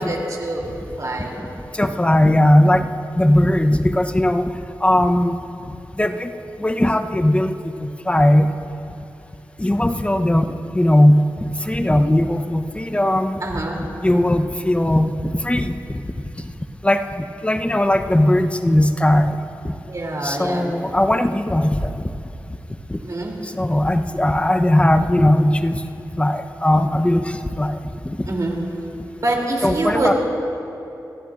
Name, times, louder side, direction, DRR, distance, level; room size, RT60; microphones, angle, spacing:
voice 1, 0.0-1.4 13.4-13.8 19.9-20.7 23.0-23.4 28.3-28.6 29.2-30.1, right 2 dB, 55° right, -1 dB, 3.0 m, -25 dB
voice 2, 1.7-2.9 3.2-4.5 4.8-5.4 6.0-6.3 6.6-8.5 9.6-10.5 10.7-13.4 14.0-15.8 16.8-19.3 20.2-21.9 22.9-23.0 23.4-25.8 26.2-27.8 28.0-28.2 29.6-30.1, left 1 dB, 15° left, 6 dB, 0.8 m, -18 dB
29.5 x 13.5 x 2.5 m, 2.9 s
cardioid pair, 60°, 7 cm